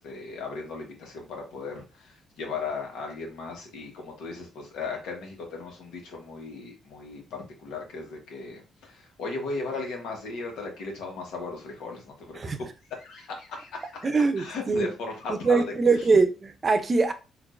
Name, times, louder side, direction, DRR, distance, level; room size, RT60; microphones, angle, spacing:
voice 1, 0.0-12.5 12.9-14.1 14.4-15.6, left 4 dB, 85° left, 1.2 m, -37 dB
voice 2, 14.0-14.9 15.3-17.1, right 4 dB, 35° right, 0.6 m, -23 dB
4.4 x 2.6 x 2.5 m
cardioid pair, 90°, 0 cm